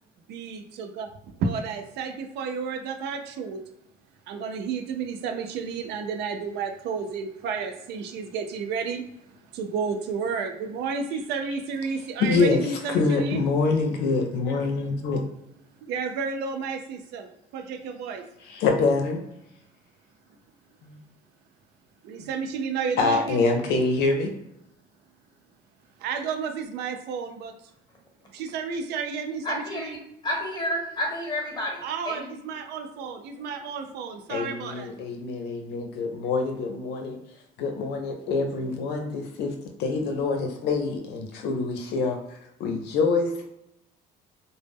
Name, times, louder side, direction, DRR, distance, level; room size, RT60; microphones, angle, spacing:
voice 1, 0.3-3.6 4.3-13.4 15.8-18.2 22.0-23.4 26.0-27.5 28.3-30.0 31.8-34.9, right 5 dB, 80° right, 0.4 m, -31 dB
voice 2, 12.2-12.6 12.9-15.2 18.5-19.2 20.8-21.0 23.0-24.3 34.3-37.2 37.6-39.5 39.8-42.2 42.6-43.5, left 4 dB, 80° left, 0.5 m, -25 dB
voice 3, 29.4-29.8 30.2-31.7 32.1-32.2, left 1 dB, 25° left, 1.0 m, -29 dB
2.0 x 2.0 x 3.3 m
cardioid pair, 110°, 17 cm